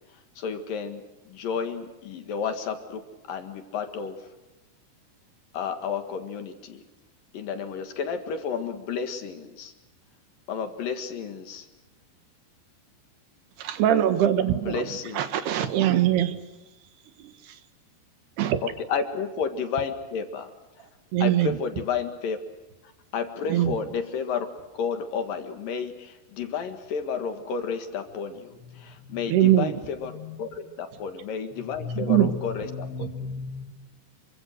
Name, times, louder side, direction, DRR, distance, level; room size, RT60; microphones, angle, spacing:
voice 1, 0.4-4.2 5.5-6.8 7.3-9.7 10.5-11.7 14.7-15.3 18.6-20.5 21.2-22.4 23.1-24.5 24.7-30.1 30.4-30.5 30.8-32.7, left 6 dB, 60° left, 7 dB, 3.2 m, -31 dB
voice 2, 13.6-14.9 15.2-16.4 17.2-17.6 18.4-18.6 21.1-21.6 23.5-23.8 29.3-29.8 32.0-32.3, right 12 dB, 75° right, 9 dB, 3.4 m, -22 dB
voice 3, 28.5-29.4 30.0-30.7 31.5-33.6, left 5 dB, 85° left, 4 dB, 5.4 m, -37 dB
28.0 x 24.0 x 6.6 m, 1.1 s
omnidirectional pair, 4.8 m